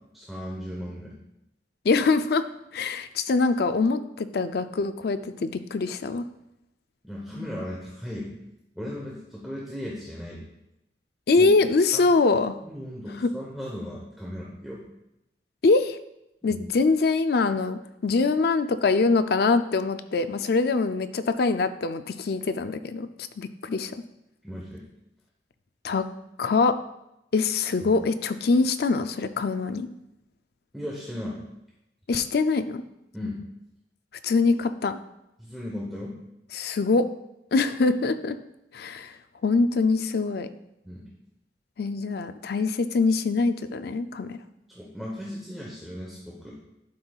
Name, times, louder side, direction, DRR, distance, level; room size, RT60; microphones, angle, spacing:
voice 1, 0.1-1.2 7.0-8.3 8.7-10.5 11.4-11.5 11.9-12.0 12.6-14.9 16.5-16.6 24.4-24.9 27.8-27.9 30.7-31.4 33.1-33.4 35.4-36.2 40.8-41.1 44.7-46.6, left 1 dB, ahead, -5 dB, 1.0 m, -36 dB
voice 2, 1.8-2.4 2.7-6.2 11.3-12.6 13.2-13.3 15.6-16.0 16.4-23.9 25.8-26.0 26.4-26.7 27.3-29.9 32.1-32.8 34.2-35.0 36.5-37.1 37.5-38.4 38.7-39.1 39.4-40.5 41.8-44.4, left 3 dB, 60° left, 11 dB, 0.4 m, -23 dB
11.5 x 5.5 x 2.4 m, 0.88 s
head